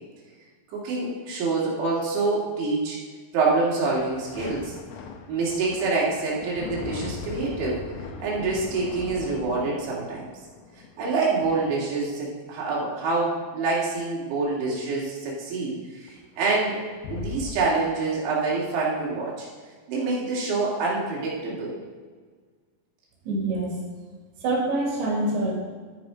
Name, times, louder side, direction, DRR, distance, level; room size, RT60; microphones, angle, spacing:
voice 1, 0.7-3.0 3.3-4.7 5.3-7.8 8.2-10.3 11.0-16.8 17.1-19.5 19.9-21.7, right 3 dB, 85° right, -5 dB, 4.8 m, -26 dB
sound 1, 3.9-11.9 16.1-16.2 16.4-17.6, left 5 dB, 80° left, 1.9 m, -39 dB
voice 2, 23.3-23.8 24.4-25.5, right 2 dB, 65° right, -3 dB, 4.2 m, -25 dB
12.0 x 8.4 x 5.1 m, 1.5 s
omnidirectional pair, 5.1 m